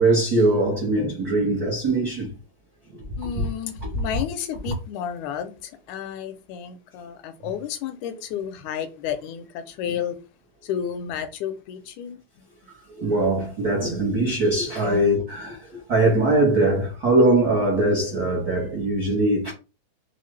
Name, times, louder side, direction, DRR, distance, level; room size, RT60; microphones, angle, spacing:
voice 1, 0.0-2.3 13.0-15.6 15.9-19.5, right 2 dB, 70° right, 0.9 m, -21 dB
voice 2, 3.2-10.2 10.6-12.4 14.8-15.0, left 8 dB, 80° left, 2.0 m, -32 dB
5.6 x 2.3 x 3.2 m
omnidirectional pair, 3.5 m